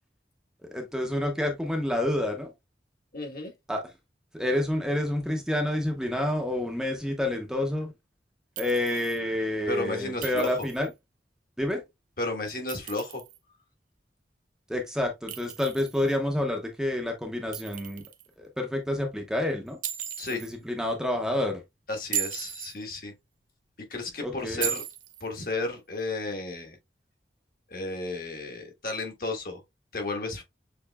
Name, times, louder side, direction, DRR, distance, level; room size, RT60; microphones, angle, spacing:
voice 1, 0.7-2.5 3.7-3.8 4.3-7.9 8.6-10.9 11.6-11.8 14.7-18.1 18.4-19.8 20.3-21.6 24.2-24.7, left 1 dB, 5° right, 0.6 m, -28 dB
voice 2, 3.1-3.5 9.7-10.7 12.2-13.2 20.2-20.4 21.9-23.1 23.8-24.8 25.2-26.8 27.7-29.6 29.9-30.4, left 2 dB, 55° left, 1.4 m, -33 dB
Chink clink, 8.6-9.2 10.2-10.9 12.5-13.4 15.3-16.2 17.5-18.3 19.8-20.5 22.0-22.7 24.6-25.3, right 10 dB, 50° right, 0.7 m, -36 dB
6.6 x 3.1 x 2.2 m
head